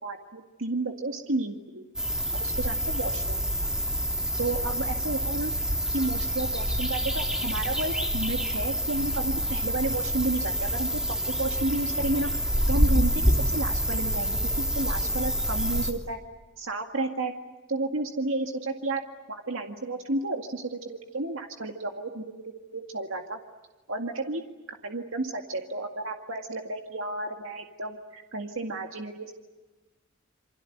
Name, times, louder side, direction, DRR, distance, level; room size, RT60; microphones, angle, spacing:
voice 1, 0.0-1.8 2.4-3.4 4.4-5.5 5.9-11.0 11.4-12.4 12.7-16.2 16.6-17.3 17.7-19.0 19.3-22.2 22.7-23.4 23.9-24.4 24.7-29.3, right 2 dB, 85° right, 3 dB, 2.1 m, -32 dB
sound 1, 2.0-15.9, equal, 5° right, 3.2 m, -27 dB
28.5 x 25.0 x 8.1 m, 1.2 s
head